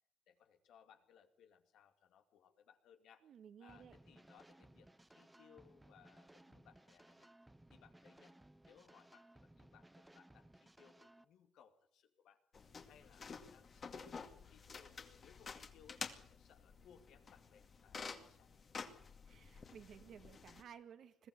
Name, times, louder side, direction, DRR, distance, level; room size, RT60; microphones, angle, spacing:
voice 1, 0.3-3.2 3.6-7.3 7.7-8.4 8.7-12.4 12.9-18.5, left 8 dB, 80° left, 7 dB, 2.4 m, -66 dB
voice 2, 3.2-4.0 19.3-21.3, right 8 dB, 65° right, 9 dB, 2.0 m, -57 dB
sound 1, 3.7-11.2, right 1 dB, 10° right, 1.0 m, -63 dB
sound 2, 12.5-20.6, left 5 dB, 45° left, 2.3 m, -51 dB
21.0 x 15.0 x 8.2 m, 0.63 s
cardioid pair, 90°, 0 cm